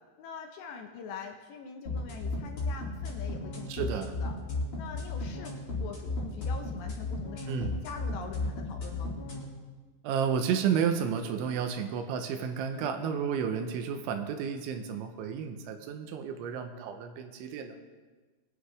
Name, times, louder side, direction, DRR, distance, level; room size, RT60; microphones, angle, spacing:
voice 1, 0.2-4.3 4.8-9.1 12.7-12.9, left 6 dB, 75° left, 4 dB, 2.9 m, -44 dB
sound 1, 1.9-9.4, left 3 dB, 35° left, 2.8 m, -34 dB
voice 2, 3.7-4.1 7.5-7.8 10.0-17.8, right 7 dB, 80° right, 6 dB, 3.2 m, -31 dB
21.5 x 10.0 x 3.4 m, 1.3 s
omnidirectional pair, 5.6 m